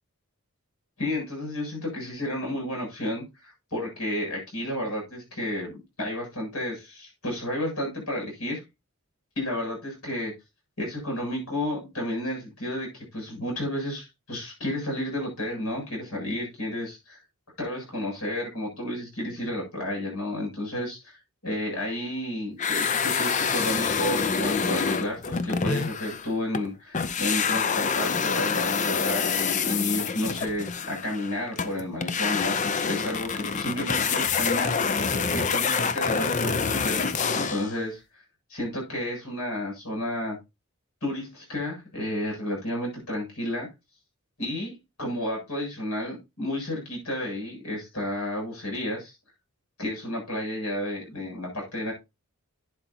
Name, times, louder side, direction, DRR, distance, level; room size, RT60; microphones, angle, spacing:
voice 1, 1.0-8.6 9.4-10.3 10.8-17.2 17.6-38.2 38.5-40.4 41.0-43.7 44.4-49.1 49.8-51.9, left 1 dB, 90° left, 0 dB, 7.9 m, -32 dB
sound 1, 22.6-26.7 26.9-37.7, left 5 dB, 35° left, 0.6 m, -27 dB
11.5 x 9.2 x 2.9 m, 0.25 s
head